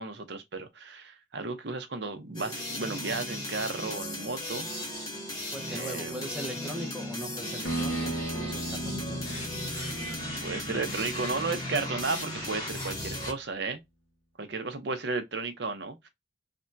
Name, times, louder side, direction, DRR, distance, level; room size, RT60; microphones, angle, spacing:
voice 1, 0.0-4.7 5.7-6.3 10.4-13.8 14.4-16.1, right 3 dB, 60° right, 0.7 m, -34 dB
sound 1, 2.3-13.3, left 1 dB, 20° left, 0.9 m, -36 dB
voice 2, 5.5-9.6, right 1 dB, 5° right, 0.6 m, -40 dB
sound 2, 7.7-12.8, right 1 dB, 90° left, 0.7 m, -37 dB
3.4 x 2.2 x 2.6 m
head